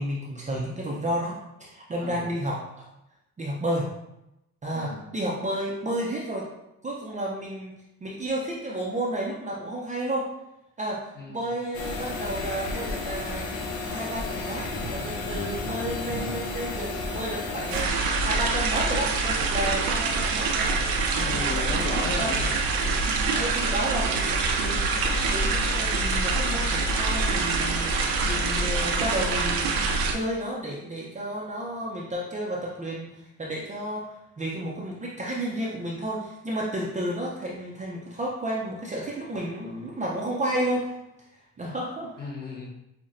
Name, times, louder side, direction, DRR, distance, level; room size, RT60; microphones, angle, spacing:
voice 1, 0.0-2.9 3.4-3.9 4.6-6.5 6.8-7.7 8.0-10.3 10.8-11.0 11.3-13.5 13.8-20.7 21.1-21.5 22.2-22.3 23.3-24.9 25.3-27.9 28.2-29.7 30.1-34.0 34.4-40.9 41.6-42.3, right 1 dB, 20° right, -4 dB, 0.5 m, -31 dB
voice 2, 2.0-2.3 4.7-5.1 11.1-11.4 21.2-22.5 24.6-24.8 42.2-42.7, left 2 dB, 25° left, -2 dB, 0.8 m, -35 dB
sound 1, 11.7-17.8, left 2 dB, 75° left, 0.9 m, -32 dB
sound 2, 17.7-30.2, right 3 dB, 70° right, 0.6 m, -25 dB
5.6 x 2.1 x 2.5 m, 0.88 s
cardioid pair, 125°, 36 cm